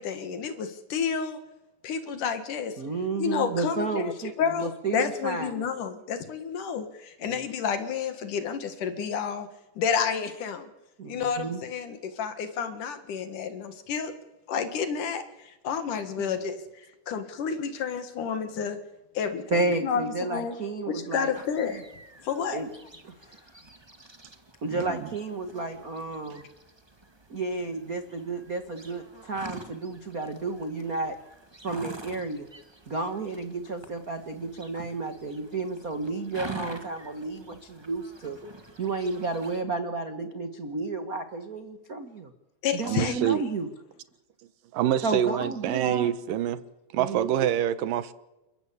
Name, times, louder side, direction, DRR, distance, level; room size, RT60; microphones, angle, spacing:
voice 1, 0.0-1.4 1.8-2.8 3.2-4.1 4.4-9.5 9.8-10.7 11.1-14.1 14.5-18.8 19.1-20.5 20.9-21.8 22.3-22.6 42.6-43.2, left 7 dB, 65° left, 3.1 m, -30 dB
voice 2, 2.8-5.7 7.2-7.4 11.0-11.6 19.5-21.3 22.5-22.7 23.0-23.6 24.6-26.4 27.3-31.2 31.6-32.5 32.9-38.4 38.8-42.3 42.7-43.7 45.0-46.1 47.0-47.3, right 3 dB, 45° right, 1.1 m, -32 dB
sound 1, 21.3-39.6, right 2 dB, 20° right, 0.7 m, -47 dB
voice 3, 24.7-25.1 42.9-43.4 44.7-46.6 46.9-48.1, right 11 dB, 75° right, 2.5 m, -26 dB
29.0 x 14.5 x 8.5 m
omnidirectional pair, 4.2 m